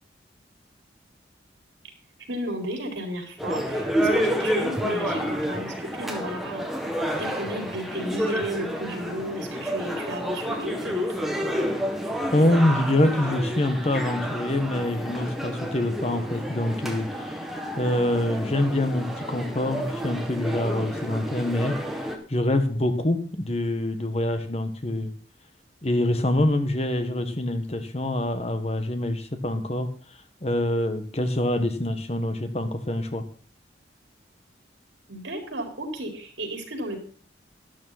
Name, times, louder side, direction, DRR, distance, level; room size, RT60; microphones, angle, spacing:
voice 1, 2.3-6.7 7.2-11.3 35.1-37.0, equal, 80° right, 3 dB, 4.5 m, -33 dB
sound 1, 3.4-22.2, equal, ahead, 1.9 m, -30 dB
voice 2, 12.3-17.5 17.8-25.1 25.8-29.9 30.4-33.2, left 1 dB, 35° left, 8 dB, 1.5 m, -25 dB
13.0 x 12.0 x 4.2 m, 0.42 s
head